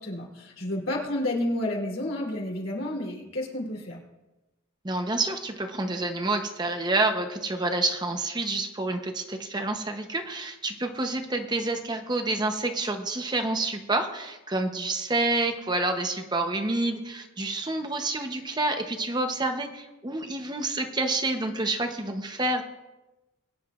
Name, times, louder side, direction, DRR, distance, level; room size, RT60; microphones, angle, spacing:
voice 1, 0.0-4.0, left 1 dB, 80° left, -2 dB, 3.5 m, -30 dB
voice 2, 4.8-22.6, right 2 dB, 20° right, 5 dB, 0.8 m, -28 dB
22.0 x 10.0 x 2.5 m, 1.0 s
head